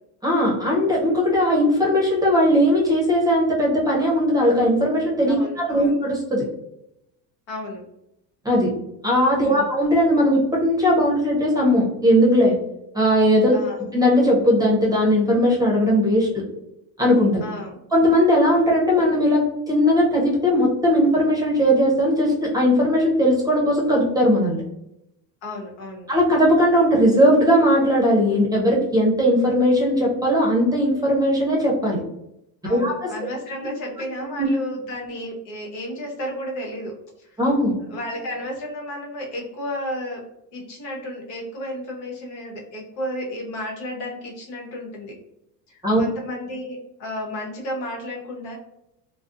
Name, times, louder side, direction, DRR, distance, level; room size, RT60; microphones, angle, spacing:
voice 1, 0.2-6.5 8.4-8.7 9.0-12.6 12.9-16.4 17.0-17.4 17.9-24.6 26.1-32.0 32.7-33.1 34.2-34.5 37.4-37.7 45.8-46.0, equal, 10° right, -3 dB, 0.6 m, -19 dB
voice 2, 5.3-6.0 7.5-7.8 9.4-9.7 13.5-13.8 17.4-17.8 25.4-26.1 32.6-36.9 37.9-40.2 40.5-45.2 46.0-48.6, left 1 dB, 85° left, 0 dB, 1.0 m, -32 dB
2.4 x 2.0 x 2.4 m, 0.83 s
supercardioid pair, 105°, 49 cm